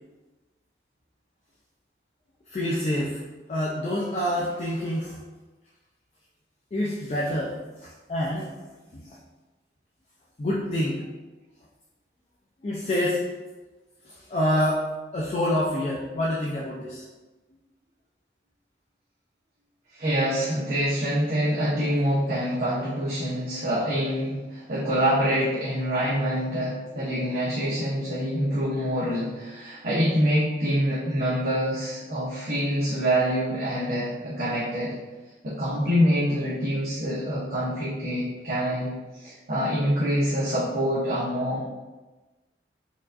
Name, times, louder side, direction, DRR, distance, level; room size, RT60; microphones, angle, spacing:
voice 1, 2.5-3.2 3.5-5.2 6.7-7.6 8.1-8.5 8.9-9.1 10.4-11.0 12.6-13.2 14.3-14.8 15.1-17.0, left 1 dB, 35° left, -5 dB, 0.4 m, -26 dB
voice 2, 19.9-34.9 35.4-41.6, equal, 55° right, -9 dB, 0.8 m, -26 dB
4.6 x 2.4 x 2.5 m, 1.2 s
head